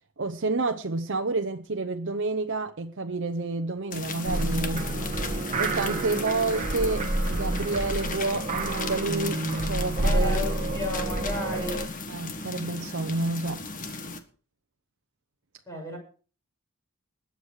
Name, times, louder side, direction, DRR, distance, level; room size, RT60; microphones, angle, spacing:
voice 1, 0.2-4.9 5.6-10.4 12.1-13.6, right 3 dB, 60° right, 0.8 m, -29 dB
sound 1, 3.9-14.2, left 3 dB, 40° left, 1.7 m, -36 dB
sound 2, 4.3-11.9, right 2 dB, 35° right, 1.3 m, -29 dB
voice 2, 10.0-12.0 15.7-16.0, left 2 dB, 15° left, 6.0 m, -33 dB
20.5 x 8.2 x 4.8 m
head